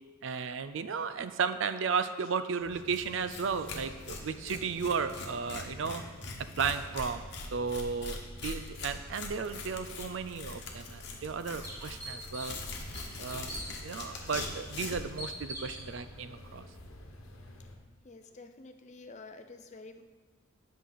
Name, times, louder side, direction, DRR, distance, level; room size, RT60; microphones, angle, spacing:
voice 1, 0.2-6.0 6.6-7.2 7.5-12.6 13.2-13.5 13.8-16.7, right 5 dB, 60° right, 11 dB, 0.4 m, -34 dB
sound 1, 2.6-17.8, left 1 dB, 75° left, 1.1 m, -50 dB
Tearing, 2.9-3.0 3.3-3.4 3.7-15.1, left 3 dB, 50° left, 1.1 m, -42 dB
sound 2, 10.6-10.7 11.2-11.3 11.6-12.6 12.9-13.7 14.3-14.5 15.2-15.8, right 1 dB, 15° right, 2.1 m, -42 dB
voice 2, 18.0-20.0, left 3 dB, 35° left, 7 dB, 0.5 m, -49 dB
11.0 x 6.2 x 4.0 m, 1.5 s
head